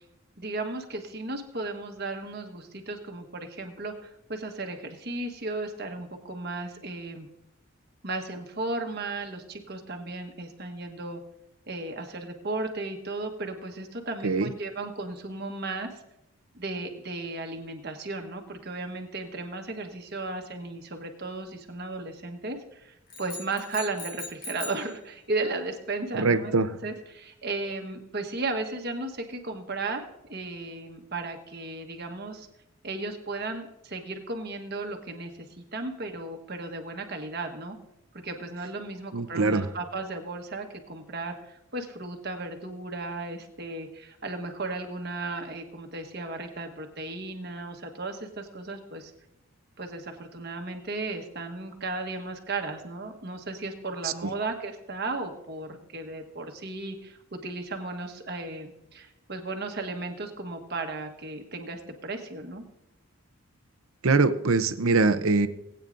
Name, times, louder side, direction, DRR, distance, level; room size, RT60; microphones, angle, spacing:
voice 1, 0.4-7.3 8.0-11.2 11.7-16.0 16.5-32.5 32.8-37.8 38.1-49.1 49.8-62.6, right 2 dB, 45° right, 4 dB, 1.3 m, -35 dB
sound 1, 23.1-24.9, left 2 dB, 45° left, 1.7 m, -39 dB
voice 2, 26.1-26.7 39.1-39.7 54.0-54.3 64.0-65.5, right 3 dB, 70° right, 12 dB, 0.7 m, -23 dB
19.5 x 9.0 x 2.6 m, 0.87 s
head